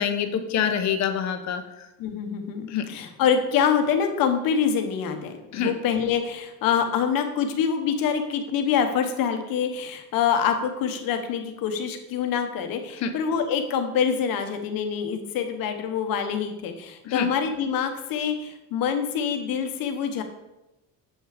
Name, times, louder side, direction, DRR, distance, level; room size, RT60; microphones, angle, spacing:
voice 1, 0.0-1.6 2.7-2.8 5.5-5.7 13.0-13.1 17.0-17.3, left 7 dB, 50° left, 8 dB, 0.9 m, -25 dB
voice 2, 2.0-20.2, left 7 dB, 70° left, 6 dB, 1.1 m, -25 dB
7.8 x 5.8 x 5.0 m, 0.96 s
cardioid pair, 175°, 36 cm